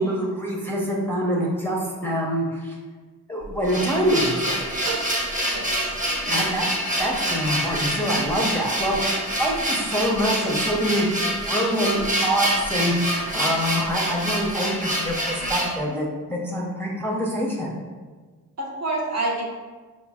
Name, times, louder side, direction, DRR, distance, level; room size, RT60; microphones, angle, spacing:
voice 1, 0.0-2.8 3.3-4.7 6.3-6.6 7.0-11.1 11.5-17.8, equal, 5° left, -4 dB, 0.6 m, -25 dB
sound 1, 3.4-15.8, right 1 dB, 25° right, 0.8 m, -26 dB
sound 2, 4.8-6.5, right 5 dB, 90° right, 0.6 m, -37 dB
voice 2, 5.4-6.4 18.6-19.4, right 2 dB, 50° right, -2 dB, 0.9 m, -29 dB
5.0 x 2.1 x 3.5 m, 1.4 s
cardioid pair, 100°, 34 cm